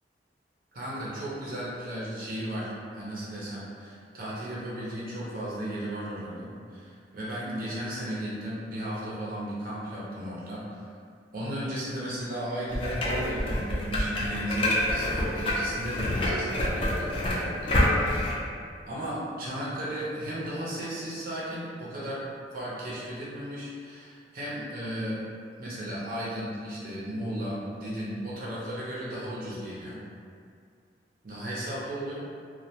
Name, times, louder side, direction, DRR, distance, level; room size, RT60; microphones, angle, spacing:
voice 1, 0.7-10.9 11.3-18.3 18.9-22.2 22.5-25.2 25.6-30.0 31.2-32.2, equal, 50° right, -8 dB, 0.6 m, -35 dB
sound 1, 12.7-18.3, left 1 dB, 30° left, 0.4 m, -27 dB
2.2 x 2.2 x 2.7 m, 2.2 s
head